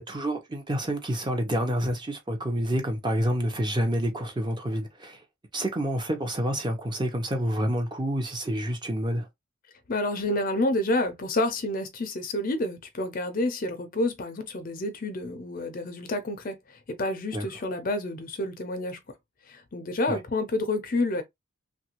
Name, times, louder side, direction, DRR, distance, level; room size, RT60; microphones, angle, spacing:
voice 1, 0.0-5.2 5.5-9.3 17.3-17.4 20.1-20.2, equal, 20° right, 0.7 m, -28 dB
voice 2, 9.9-19.0 19.5-21.2, left 2 dB, 40° left, 0.5 m, -29 dB
3.1 x 2.5 x 2.9 m
head